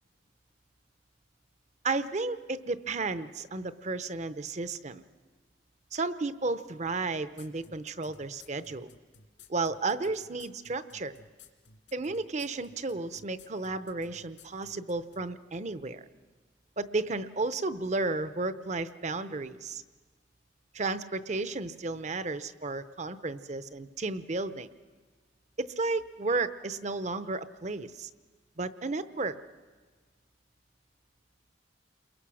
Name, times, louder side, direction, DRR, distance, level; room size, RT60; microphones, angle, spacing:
voice 1, 1.8-5.0 5.9-8.9 9.5-11.1 11.9-16.1 16.8-19.8 20.7-24.7 25.6-28.1 28.6-29.4, right 3 dB, 40° right, 13 dB, 0.7 m, -33 dB
sound 1, 7.4-15.2, left 4 dB, 75° left, 2.6 m, -55 dB
29.5 x 22.0 x 6.3 m, 1.4 s
head